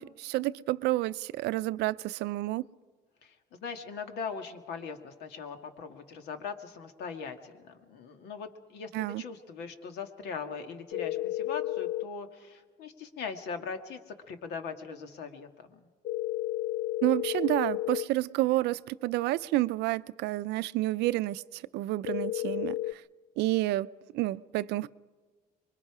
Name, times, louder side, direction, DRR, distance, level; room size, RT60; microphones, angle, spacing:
voice 1, 0.0-2.6 8.9-9.2 17.0-23.0 23.4-23.9 24.1-24.9, right 17 dB, 85° right, 0.5 m, -29 dB
voice 2, 3.2-8.9 9.2-15.8, left 5 dB, 80° left, 2.1 m, -40 dB
sound 1, 10.9-12.1 16.0-18.1 22.0-22.9, left 17 dB, 55° left, 0.6 m, -32 dB
26.0 x 22.5 x 5.0 m
cardioid pair, 110°, 17 cm